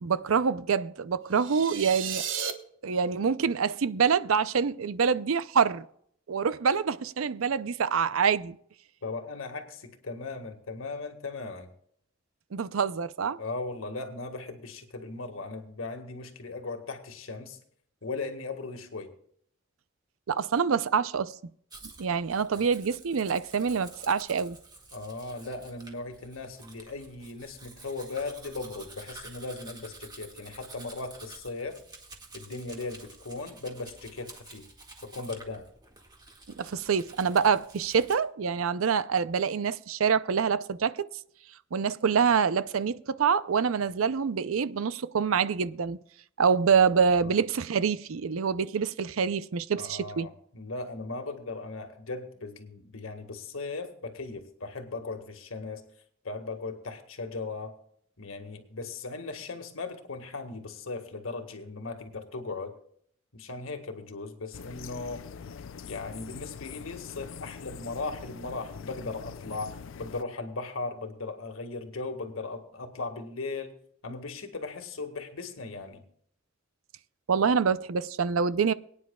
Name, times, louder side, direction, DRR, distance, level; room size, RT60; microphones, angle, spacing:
voice 1, 0.0-2.3 2.8-5.9 6.3-8.6 12.5-13.4 20.3-21.3 22.0-24.6 36.5-41.1 41.7-46.0 46.4-50.3 77.3-78.7, right 6 dB, 90° right, 0.5 m, -26 dB
sound 1, 1.3-2.5, right 8 dB, 65° right, 1.1 m, -33 dB
voice 2, 9.0-11.7 13.4-17.6 18.0-19.1 24.9-31.8 32.3-34.7 35.0-35.6 47.2-47.3 49.8-55.8 56.2-57.8 58.2-62.7 63.3-65.2 65.8-73.7 74.0-76.0, left 3 dB, 90° left, 1.7 m, -38 dB
Domestic sounds home sounds, 21.7-38.2, right 3 dB, 20° right, 1.9 m, -50 dB
sound 2, 64.5-70.2, left 6 dB, 70° left, 0.5 m, -43 dB
23.0 x 9.6 x 2.3 m
head